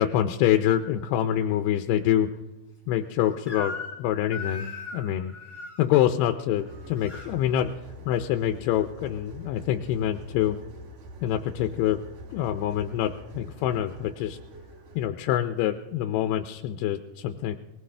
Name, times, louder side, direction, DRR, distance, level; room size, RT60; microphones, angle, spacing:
voice 1, 0.0-2.3 2.9-5.3 5.8-7.7 8.1-10.6 11.2-12.0 12.3-14.4 15.0-17.6, left 11 dB, 90° left, 7 dB, 2.7 m, -26 dB
Crying sobbing / Screech, 3.5-4.0 4.3-5.8 6.6-7.3, left 4 dB, 10° left, 4.0 m, -38 dB
sound 1, 6.5-15.1, equal, 60° right, 2.1 m, -45 dB
21.5 x 18.0 x 3.3 m, 1.1 s
omnidirectional pair, 4.5 m